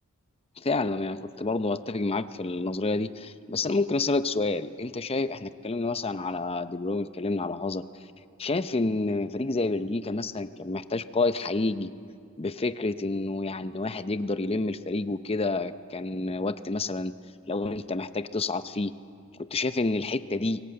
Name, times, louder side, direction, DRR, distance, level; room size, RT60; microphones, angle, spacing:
voice 1, 0.6-7.8 8.4-11.9 12.4-17.1 17.5-18.9 19.5-20.6, left 3 dB, 25° left, 12 dB, 0.7 m, -29 dB
24.0 x 20.5 x 7.8 m, 2.3 s
head